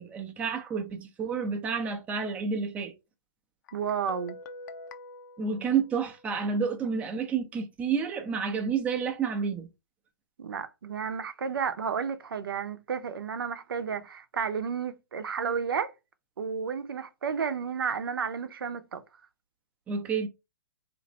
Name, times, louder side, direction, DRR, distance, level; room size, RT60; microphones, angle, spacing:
voice 1, 0.0-2.9 5.4-9.7 19.9-20.3, right 6 dB, 10° right, 0.5 m, -30 dB
Guitar, 3.7-6.5, left 2 dB, 55° left, 0.5 m, -46 dB
voice 2, 3.7-4.4 10.4-15.9 16.4-19.0, right 6 dB, 80° right, 0.6 m, -32 dB
2.9 x 2.5 x 4.1 m
hypercardioid pair, 140°, 12 cm